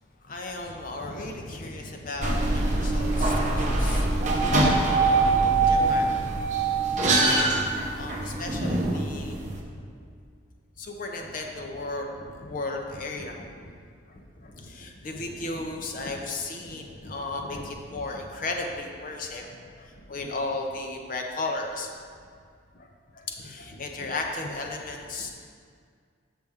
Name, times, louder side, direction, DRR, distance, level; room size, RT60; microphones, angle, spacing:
voice 1, 0.2-7.0 7.3-9.5 9.7-9.8 10.8-13.7 14.1-21.9 22.7-25.3, left 2 dB, 45° left, 2 dB, 0.7 m, -35 dB
sound 1, 2.2-9.6, right 3 dB, 40° right, 0.7 m, -23 dB
6.6 x 5.9 x 3.5 m, 2.1 s
head